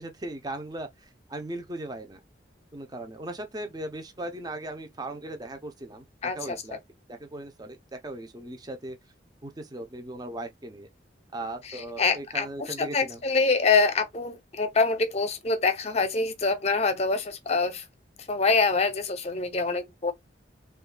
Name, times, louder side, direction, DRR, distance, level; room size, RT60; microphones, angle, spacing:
voice 1, 0.0-2.2 2.7-6.8 7.1-9.0 9.4-10.9 11.3-13.2, right 1 dB, 20° right, 0.6 m, -38 dB
voice 2, 6.2-6.6 11.6-17.8 18.3-20.1, left 4 dB, 35° left, 0.7 m, -25 dB
5.4 x 2.4 x 2.2 m
head